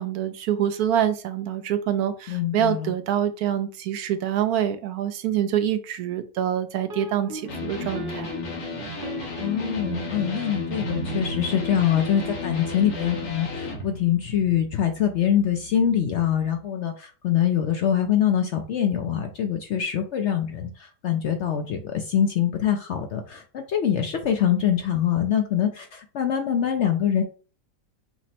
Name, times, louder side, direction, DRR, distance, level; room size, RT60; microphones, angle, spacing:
voice 1, 0.0-8.3, right 10 dB, 75° right, 1.0 m, -26 dB
voice 2, 2.3-2.9 9.4-27.2, left 9 dB, 65° left, 0.7 m, -24 dB
sound 1, 6.9-16.6, right 4 dB, 55° right, 0.6 m, -38 dB
Electric guitar, 7.5-13.9, left 4 dB, 90° left, 2.0 m, -33 dB
5.9 x 2.1 x 4.1 m
omnidirectional pair, 1.7 m